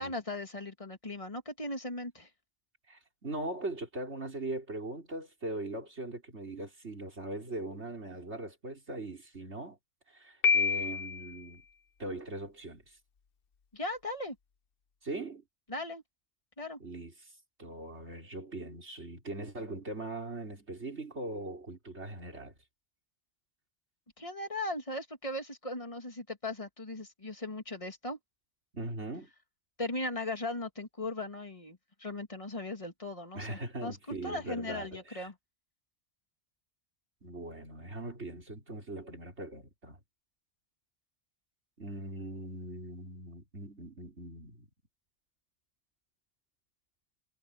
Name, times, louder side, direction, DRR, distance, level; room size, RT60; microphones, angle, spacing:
voice 1, 0.0-2.3 13.7-14.4 15.7-16.0 16.6-16.8 24.2-28.2 29.8-35.3, left 2 dB, 30° left, 2.6 m, -38 dB
voice 2, 2.9-9.8 10.1-11.6 12.0-13.0 15.0-15.4 16.8-17.3 17.6-22.5 28.7-29.3 33.3-35.3 37.2-40.0 41.8-44.7, right 2 dB, 85° right, 4.7 m, -40 dB
Piano, 10.4-11.4, left 6 dB, 60° left, 1.1 m, -27 dB
omnidirectional pair, 1.1 m